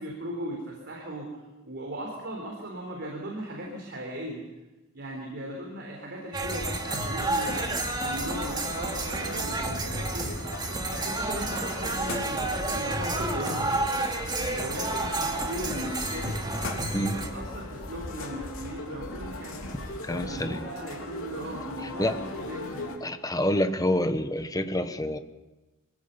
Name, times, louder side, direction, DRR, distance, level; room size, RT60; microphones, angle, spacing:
voice 1, 0.0-4.4 4.9-10.4 10.8-14.0 14.5-16.4 17.1-19.6 20.1-22.9, equal, 55° right, -1 dB, 4.0 m, -37 dB
sound 1, 6.3-17.3, right 2 dB, 20° right, 2.3 m, -31 dB
sound 2, 6.6-6.7 7.0-7.3 7.6-7.9 8.2-8.5 8.8-9.1 9.4-9.7 10.0-10.3 10.6-10.9 11.2-11.5 11.8-12.1 12.4-12.7 13.0-13.3 13.6-13.9 14.2-14.5 14.8-15.1 15.4-15.7 16.0-16.3 16.6-16.9 17.2-17.5 17.8-18.1 18.4-18.7 19.0-19.3 19.6-19.9 20.2-20.3, left 1 dB, 80° right, 6.8 m, -41 dB
sound 3, 6.9-23.0, left 2 dB, 75° left, 3.3 m, -40 dB
voice 2, 16.9-17.3 20.0-20.7 22.0-22.3 23.0-25.2, left 1 dB, 15° left, 9 dB, 1.1 m, -27 dB
24.0 x 17.0 x 6.9 m, 1.1 s
head